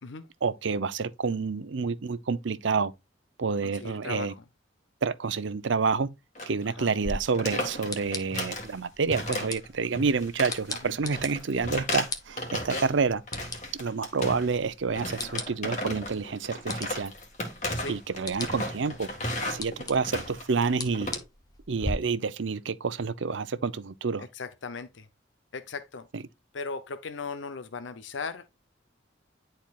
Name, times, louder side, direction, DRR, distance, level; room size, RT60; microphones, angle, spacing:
voice 1, 0.4-2.9 3.4-4.3 5.0-6.1 6.5-13.2 13.7-17.1 17.9-19.1 19.5-21.1 21.7-24.2 26.1-26.2, right 5 dB, 70° right, 0.6 m, -28 dB
voice 2, 3.6-4.4 6.7-6.9 10.8-11.0 15.1-15.3 17.7-18.0 24.2-25.1 25.5-26.1 26.5-28.5, left 4 dB, 70° left, 0.6 m, -38 dB
sound 1, 6.3-6.6 6.9-7.0 7.3-8.7 9.1-9.7 9.9-13.0 13.3-14.6 14.9-21.2, left 1 dB, 40° left, 1.8 m, -34 dB
sound 2, 7.0-21.9, left 3 dB, 20° left, 0.9 m, -41 dB
10.5 x 4.4 x 2.4 m
head